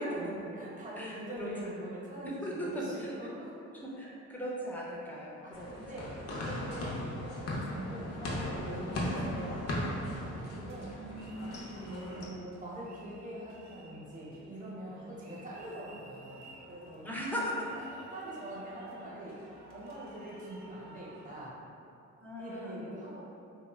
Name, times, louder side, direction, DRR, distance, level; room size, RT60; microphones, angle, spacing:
voice 1, 0.0-0.4 1.0-1.7 2.2-3.2 3.7-6.1 10.9-11.3 17.0-17.7 22.2-22.8, equal, 5° left, -5 dB, 0.6 m, -38 dB
voice 2, 0.5-3.6 5.4-10.9 12.1-17.1 18.1-19.4 19.7-21.6 22.4-23.3, right 1 dB, 25° right, -6 dB, 0.8 m, -43 dB
sound 1, 4.5-7.7 8.5-8.7, equal, 75° left, 0.9 m, -56 dB
sound 2, 5.5-12.3, left 1 dB, 55° left, 0.6 m, -37 dB
sound 3, 8.6-21.5, right 2 dB, 65° right, 0.6 m, -56 dB
2.7 x 2.1 x 3.3 m, 2.6 s
cardioid pair, 90°, 30 cm